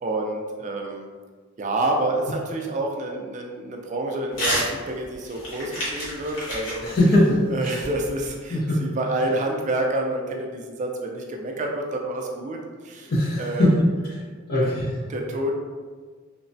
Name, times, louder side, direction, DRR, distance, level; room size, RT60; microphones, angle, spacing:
voice 1, 0.0-1.1 1.6-6.9 7.5-13.1 13.4-13.7 15.1-15.5, right 2 dB, 35° right, 1 dB, 0.4 m, -28 dB
Crumpling crinkling / Tearing, 4.3-4.7 5.0-8.3, equal, 80° left, 1.1 m, -30 dB
voice 2, 6.8-7.8 8.5-8.8 13.1-13.8 14.5-14.9, left 1 dB, 50° left, -2 dB, 0.5 m, -21 dB
3.2 x 2.0 x 2.6 m, 1.5 s
head